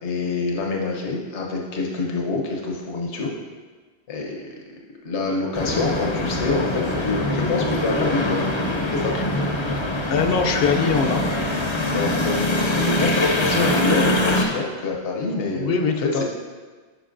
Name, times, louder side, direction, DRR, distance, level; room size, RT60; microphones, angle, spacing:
voice 1, 0.0-3.3 4.1-4.5 5.0-8.4 8.9-9.1 11.9-16.2, left 3 dB, 80° left, 0 dB, 1.2 m, -26 dB
sound 1, 5.5-14.4, left 1 dB, 30° left, 0.6 m, -23 dB
voice 2, 10.1-11.2 15.6-16.2, left 5 dB, 65° left, 4 dB, 0.8 m, -22 dB
10.0 x 5.1 x 2.6 m, 1.4 s
omnidirectional pair, 1.2 m